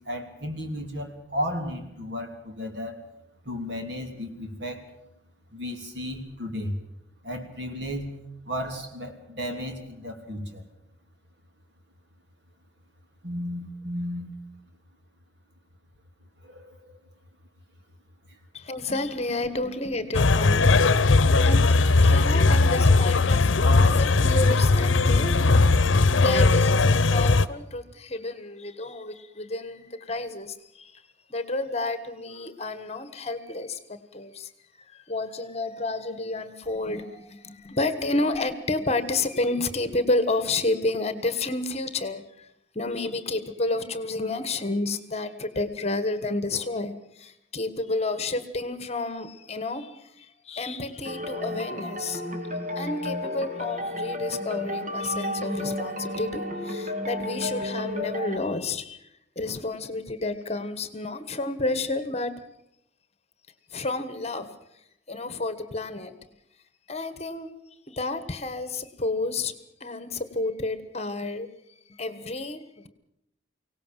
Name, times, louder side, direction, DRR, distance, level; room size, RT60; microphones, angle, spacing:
voice 1, 0.0-3.0 3.4-4.9 5.5-6.8 7.2-8.2 8.4-10.7 13.2-14.3 16.4-17.0 18.3-18.4, equal, 65° right, 5 dB, 3.3 m, -34 dB
voice 2, 18.5-25.4 25.8-31.0 31.3-34.5 34.8-42.5 42.7-52.2 52.7-59.0 59.3-62.3 63.7-64.5 65.1-66.1 66.9-67.5 67.9-69.5 69.8-71.5 71.9-72.9, left 2 dB, 35° left, 11 dB, 1.4 m, -30 dB
sound 1, 20.1-27.5, left 3 dB, 80° left, 0.8 m, -19 dB
sound 2, 51.0-58.4, left 1 dB, 40° right, 2.0 m, -32 dB
24.0 x 18.0 x 7.6 m, 0.81 s
head